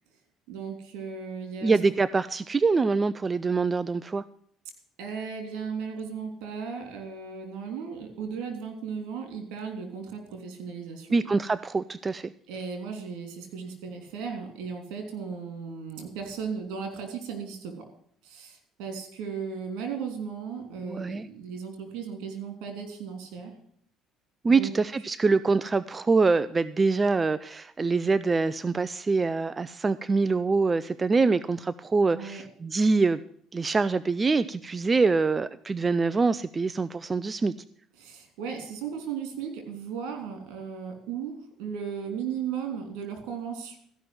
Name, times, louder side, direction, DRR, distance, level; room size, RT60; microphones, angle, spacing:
voice 1, 0.5-1.7 5.0-11.2 12.5-17.7 18.2-23.5 24.5-24.7 32.1-32.4 38.0-43.8, right 6 dB, 80° right, 5 dB, 3.2 m, -36 dB
voice 2, 1.6-4.2 11.1-12.3 20.9-21.3 24.4-33.2 33.5-37.5, right 4 dB, 25° right, 16 dB, 0.5 m, -24 dB
14.5 x 5.9 x 7.9 m, 0.62 s
supercardioid pair, 85°, 0 cm